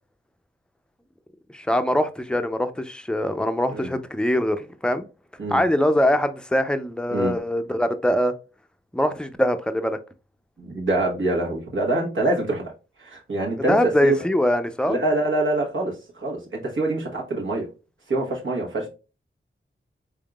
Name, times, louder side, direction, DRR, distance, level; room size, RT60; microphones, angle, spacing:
voice 1, 1.5-5.1 5.5-8.3 8.9-10.0 13.7-15.0, left 1 dB, 5° left, 0.5 m, -22 dB
voice 2, 10.6-12.7 13.0-13.8 14.0-14.1 14.9-17.7 18.1-18.9, right 2 dB, 70° right, 1.3 m, -25 dB
3.6 x 3.5 x 2.4 m
cardioid pair, 45°, 21 cm